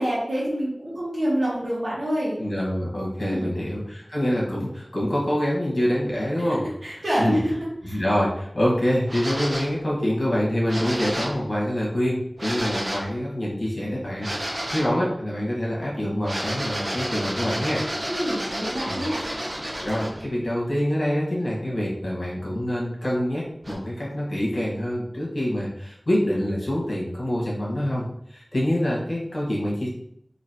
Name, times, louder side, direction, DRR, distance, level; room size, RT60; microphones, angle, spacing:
voice 1, 0.0-2.4 3.2-3.5 6.4-6.5 6.8-7.5 7.8-8.0 18.0-19.2, equal, 75° right, -9 dB, 1.4 m, -27 dB
voice 2, 2.4-6.6 7.2-7.4 7.8-17.8 18.8-19.0 19.8-29.9, equal, 60° left, -5 dB, 1.5 m, -26 dB
sound 1, 9.1-9.8 10.7-11.4 12.4-13.1 14.2-14.9 16.2-20.3 23.6-23.7, right 1 dB, 50° right, 0.9 m, -31 dB
4.0 x 3.0 x 3.0 m, 0.73 s
wide cardioid pair, 40°, 0 cm